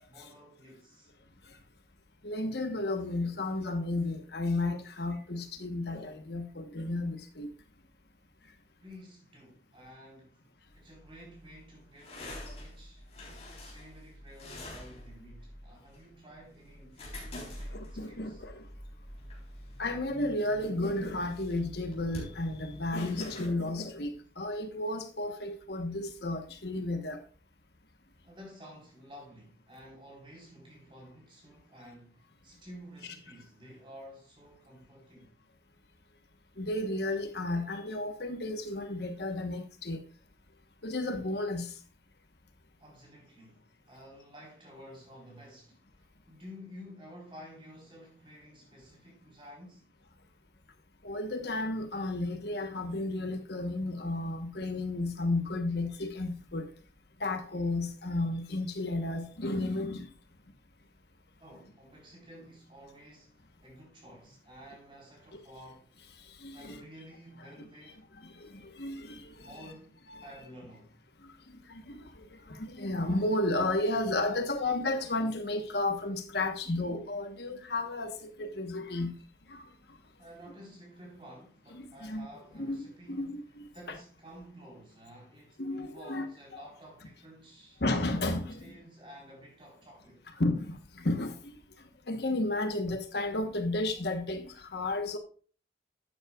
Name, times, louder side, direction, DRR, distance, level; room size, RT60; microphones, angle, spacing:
voice 1, 0.1-1.1 8.8-10.4 10.7-13.1 13.6-18.4 28.2-35.3 42.8-49.8 61.4-65.9 66.5-68.1 69.4-70.9 80.2-83.4 83.7-87.8 88.6-90.3, equal, 30° right, 4.1 m, -52 dB
voice 2, 2.2-7.5 17.7-18.6 19.8-27.2 36.6-40.0 40.8-41.7 51.0-56.7 57.2-60.1 66.3-66.8 68.2-69.5 70.1-70.3 71.7-79.1 79.5-79.7 81.7-82.3 82.6-82.8 83.1-84.0 85.6-86.2 87.8-88.8 90.4-91.6 92.1-95.2, left 2 dB, 65° left, 1.2 m, -33 dB
sound 1, 10.7-23.5, left 1 dB, 35° left, 3.8 m, -47 dB
12.0 x 8.8 x 2.4 m
head